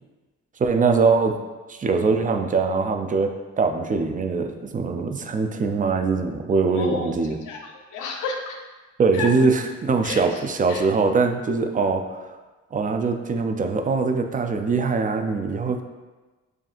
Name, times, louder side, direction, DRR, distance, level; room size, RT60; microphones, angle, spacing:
voice 1, 0.6-1.4 1.7-7.4 9.0-12.2 12.7-15.8, right 4 dB, 25° right, 5 dB, 0.4 m, -22 dB
voice 2, 6.8-7.1 7.5-8.6 9.1-9.3 10.0-10.4 10.7-10.8, left 4 dB, 85° left, 2 dB, 0.8 m, -32 dB
7.4 x 2.7 x 2.5 m, 1.2 s
cardioid pair, 90°, 30 cm